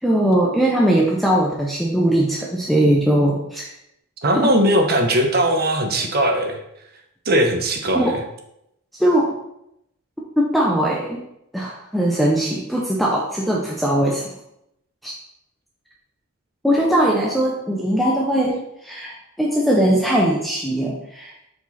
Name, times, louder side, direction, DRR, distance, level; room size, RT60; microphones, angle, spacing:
voice 1, 0.0-3.7 7.9-8.2 8.9-9.4 10.4-11.2 11.5-14.3 15.0-15.1 16.6-21.3, right 1 dB, ahead, -3 dB, 0.7 m, -20 dB
voice 2, 4.2-6.6 7.3-8.2, right 1 dB, 45° right, 4 dB, 0.9 m, -19 dB
6.1 x 4.9 x 4.2 m, 0.80 s
head